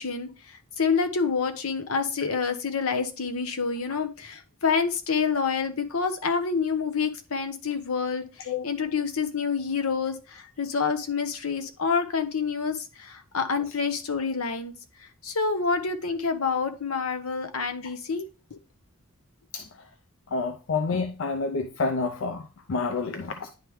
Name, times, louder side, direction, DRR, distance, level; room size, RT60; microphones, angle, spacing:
voice 1, 0.0-14.7 15.0-18.6, left 5 dB, 80° left, 0.9 m, -28 dB
voice 2, 19.5-19.9 20.3-23.5, left 4 dB, 60° left, 0.5 m, -29 dB
10.0 x 3.4 x 3.1 m
head